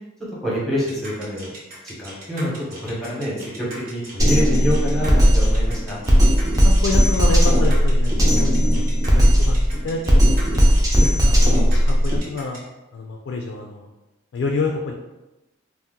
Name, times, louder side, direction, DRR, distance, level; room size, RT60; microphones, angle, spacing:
voice 1, 0.4-1.5 1.8-2.5 2.8-6.0 11.0-11.1, equal, ahead, -7 dB, 0.9 m, -26 dB
sound 1, 0.9-12.6, right 1 dB, 50° right, 0.9 m, -39 dB
Drum kit, 4.2-12.2, equal, 20° right, 0.5 m, -16 dB
voice 2, 6.6-8.1 8.4-10.7 11.2-12.6 12.9-13.9 14.3-14.9, left 3 dB, 65° left, 2 dB, 0.3 m, -28 dB
2.8 x 2.0 x 3.5 m, 1.0 s
head